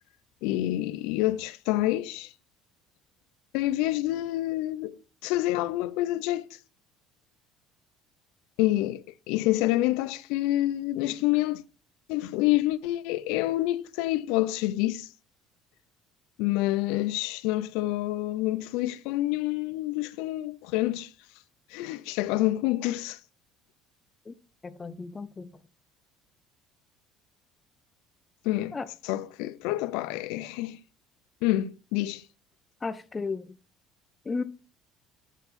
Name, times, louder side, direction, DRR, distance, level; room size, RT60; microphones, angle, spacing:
voice 1, 0.4-2.3 3.5-5.0 5.2-6.5 8.6-11.6 12.1-15.1 16.4-21.1 21.7-23.2 28.4-28.8 29.0-30.8 31.4-32.2, left 16 dB, 85° left, 0.6 m, -27 dB
voice 2, 24.6-25.5 28.7-28.9 32.8-33.6 34.3-34.4, left 4 dB, 15° left, 0.4 m, -34 dB
8.3 x 5.7 x 4.2 m
cardioid pair, 175°, 0 cm